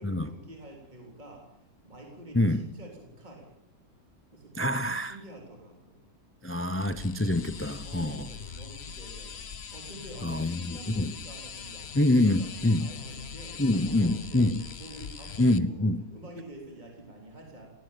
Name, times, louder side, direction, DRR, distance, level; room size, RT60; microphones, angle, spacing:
voice 1, 0.0-1.4 1.8-3.5 4.3-6.0 7.8-14.5 14.8-17.7, right 1 dB, 30° right, 3.8 m, -47 dB
voice 2, 2.3-2.7 4.6-5.2 6.4-8.3 10.2-11.1 11.9-12.9 13.6-14.6 15.4-16.0, left 1 dB, 15° left, 0.4 m, -26 dB
sound 1, 6.7-15.6, left 7 dB, 50° left, 1.1 m, -42 dB
18.0 x 17.5 x 8.6 m
omnidirectional pair, 1.5 m